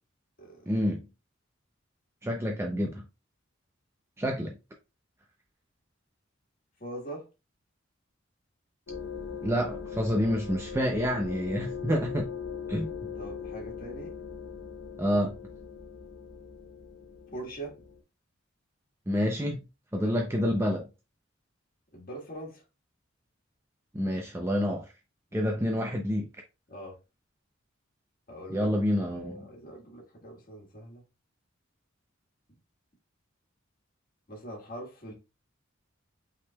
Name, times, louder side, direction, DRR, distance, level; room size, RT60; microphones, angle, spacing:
voice 1, 0.7-1.0 2.2-3.0 4.2-4.6 9.4-12.3 12.7-12.9 15.0-15.4 19.1-19.6 19.9-20.9 23.9-24.9 25.3-26.3 28.5-29.5, equal, 15° right, 0.6 m, -28 dB
voice 2, 6.8-7.3 13.1-14.1 17.3-17.8 19.9-20.2 21.9-22.6 25.4-25.5 26.7-27.0 28.3-28.7 29.1-31.0 34.3-35.1, right 1 dB, 45° left, 1.6 m, -42 dB
sound 1, 8.9-18.0, left 6 dB, 70° left, 0.8 m, -40 dB
5.6 x 3.6 x 2.3 m
head